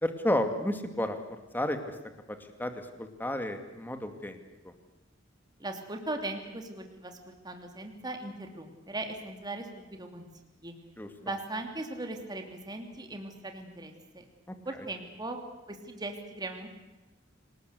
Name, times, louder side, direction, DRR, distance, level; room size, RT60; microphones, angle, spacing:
voice 1, 0.0-1.2 1.5-1.8 2.6-4.4 11.0-11.1, left 1 dB, 10° left, 7 dB, 2.4 m, -31 dB
voice 2, 5.6-7.2 7.4-10.3 10.6-10.7 11.2-14.2 14.6-15.4 15.7-16.7, right 2 dB, 20° right, 4 dB, 2.8 m, -39 dB
26.5 x 19.5 x 8.1 m, 1.1 s
head